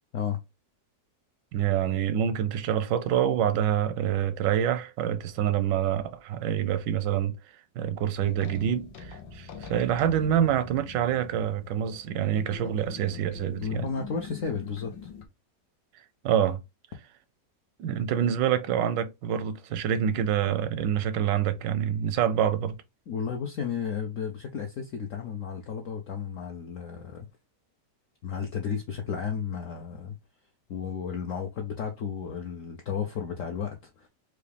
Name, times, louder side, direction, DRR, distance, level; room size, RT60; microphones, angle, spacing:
voice 1, 1.5-7.3 7.8-13.9 16.2-16.6 17.8-22.8, right 9 dB, 85° right, 1.3 m, -26 dB
sound 1, 8.2-15.3, left 6 dB, 85° left, 1.4 m, -44 dB
voice 2, 13.6-15.1 23.1-27.3 28.2-30.2 30.7-34.1, left 6 dB, 65° left, 0.8 m, -33 dB
4.8 x 2.4 x 3.2 m
omnidirectional pair, 1.9 m